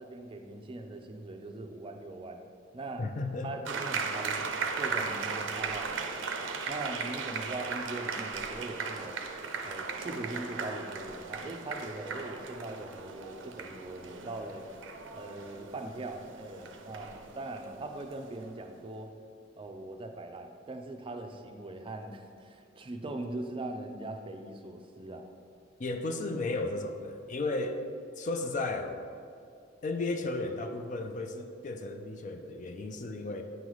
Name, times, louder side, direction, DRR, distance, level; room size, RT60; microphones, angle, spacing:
voice 1, 0.0-2.4 2.7-3.1 3.4-6.1 6.7-9.2 9.7-14.6 15.1-19.1 19.6-25.3, right 2 dB, 30° right, 5 dB, 0.4 m, -41 dB
voice 2, 3.0-3.5 25.8-27.8 28.2-29.0 29.8-33.4, left 2 dB, 40° left, 6 dB, 0.4 m, -34 dB
sound 1, 3.6-18.6, right 5 dB, 85° right, 0.5 m, -37 dB
9.1 x 3.9 x 3.1 m, 2.4 s
head